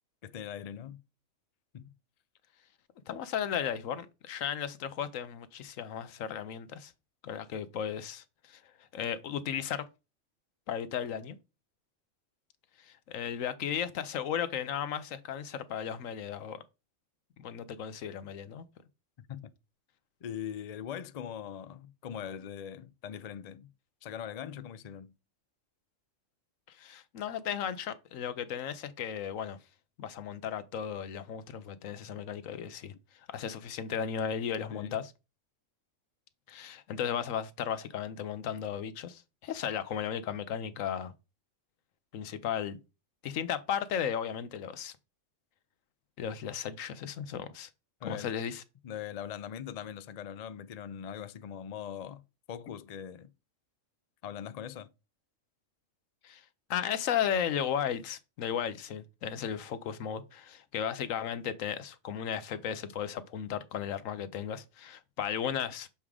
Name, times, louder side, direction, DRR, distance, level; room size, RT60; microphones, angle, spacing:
voice 1, 0.2-1.0 1.7-1.9 19.2-19.5 20.2-23.7 24.0-25.1 34.7-35.0 48.0-48.3 48.8-52.2 52.5-53.3 54.2-54.9, left 9 dB, 55° left, 0.4 m, -41 dB
voice 2, 3.1-6.9 7.2-8.6 8.9-9.8 10.7-11.4 12.8-16.6 17.4-18.7 26.7-29.6 30.0-32.9 33.3-35.1 36.5-41.1 42.1-42.8 43.2-44.9 46.2-47.7 48.0-48.6 56.2-56.4 56.7-65.9, left 8 dB, 85° left, 1.1 m, -35 dB
7.1 x 3.6 x 4.8 m
omnidirectional pair, 1.3 m